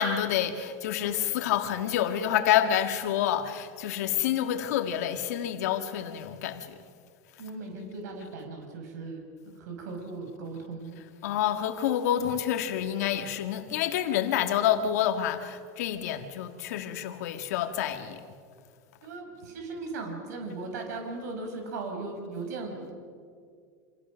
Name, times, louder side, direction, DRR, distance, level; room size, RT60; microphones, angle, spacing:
voice 1, 0.0-6.7 11.2-18.2, left 10 dB, 70° left, 1.8 m, -28 dB
voice 2, 7.4-11.0 19.0-22.9, right 3 dB, 90° right, 5.4 m, -38 dB
29.5 x 27.0 x 6.4 m
supercardioid pair, 180°, 9 cm